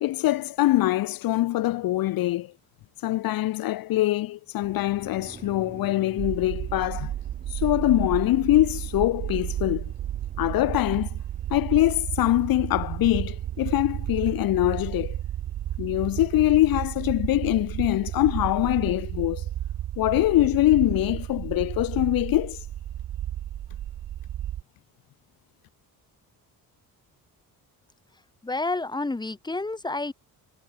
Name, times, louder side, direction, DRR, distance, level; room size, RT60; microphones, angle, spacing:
voice 1, 0.0-2.5 3.0-7.1 7.5-9.9 10.4-11.2 11.5-15.2 15.8-19.5 20.0-22.6, left 16 dB, 70° left, 0.7 m, -23 dB
sound 1, 4.6-17.8, right 4 dB, 20° right, 7.9 m, -51 dB
sound 2, 6.2-24.6, right 12 dB, 65° right, 4.5 m, -32 dB
voice 2, 28.4-30.1, left 2 dB, 10° left, 3.3 m, -29 dB
cardioid pair, 170°, 37 cm